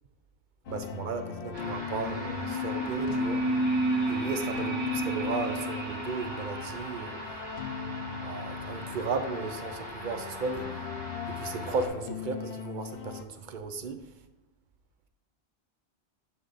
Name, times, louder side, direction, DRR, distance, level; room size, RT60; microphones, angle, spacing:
sound 1, 0.6-13.2, left 8 dB, 60° left, 0.7 m, -40 dB
voice 1, 0.7-3.4 4.1-4.8 5.1-7.2 8.2-10.7 11.3-14.0, right 4 dB, 55° right, 8 dB, 0.7 m, -35 dB
sound 2, 1.5-11.9, equal, 70° right, 3.3 m, -41 dB
sound 3, 2.0-7.3 7.6-7.7, right 1 dB, 25° right, 0.9 m, -31 dB
9.9 x 3.6 x 4.0 m, 0.96 s
omnidirectional pair, 1.1 m